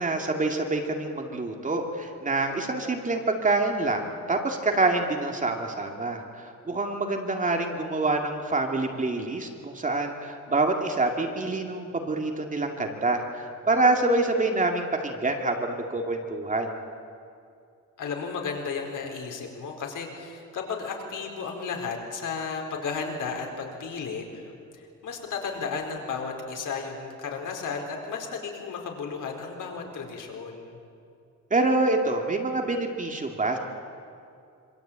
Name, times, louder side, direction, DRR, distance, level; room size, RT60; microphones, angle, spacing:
voice 1, 0.0-16.8 31.5-33.6, right 2 dB, 25° right, 3 dB, 2.3 m, -26 dB
voice 2, 18.0-30.8, left 5 dB, 80° left, 2 dB, 4.6 m, -34 dB
26.5 x 25.0 x 8.9 m, 2.5 s
wide cardioid pair, 160°, 31 cm